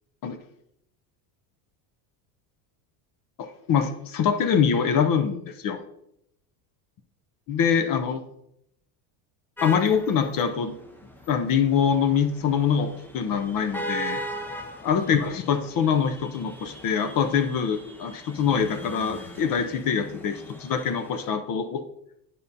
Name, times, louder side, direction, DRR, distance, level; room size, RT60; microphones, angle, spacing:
voice 1, 3.4-5.8 7.5-8.2 9.6-10.7 11.3-14.2 14.8-21.8, left 7 dB, 45° left, 8 dB, 0.6 m, -24 dB
sound 1, 9.6-21.3, right 1 dB, 5° left, 0.4 m, -40 dB
9.4 x 5.3 x 2.7 m, 0.78 s
cardioid pair, 120°, 48 cm